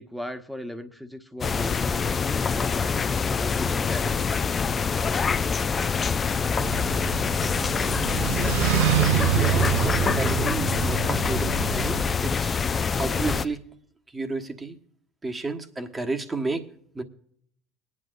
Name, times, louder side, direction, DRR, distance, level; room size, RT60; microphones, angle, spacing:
voice 1, 0.0-4.2, equal, 5° right, 8 dB, 1.1 m, -38 dB
sound 1, 1.4-13.5, left 5 dB, 30° left, 0.5 m, -25 dB
sound 2, 6.6-12.0, right 14 dB, 75° right, 0.3 m, -27 dB
voice 2, 9.2-12.6 13.0-13.6 14.1-14.8 15.2-16.7 16.9-17.0, right 3 dB, 20° right, 7 dB, 1.3 m, -32 dB
21.0 x 9.7 x 2.6 m, 0.67 s
hypercardioid pair, 80°, 0 cm